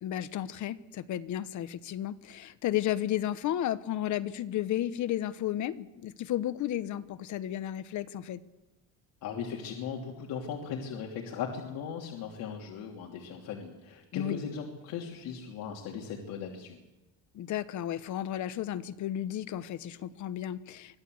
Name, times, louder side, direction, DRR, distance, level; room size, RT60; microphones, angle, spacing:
voice 1, 0.0-8.4 14.1-14.4 17.3-21.0, left 12 dB, 60° left, 14 dB, 1.1 m, -33 dB
voice 2, 9.2-16.8, left 7 dB, 85° left, 0 dB, 3.2 m, -38 dB
24.5 x 15.5 x 7.9 m, 1.0 s
cardioid pair, 135°, 34 cm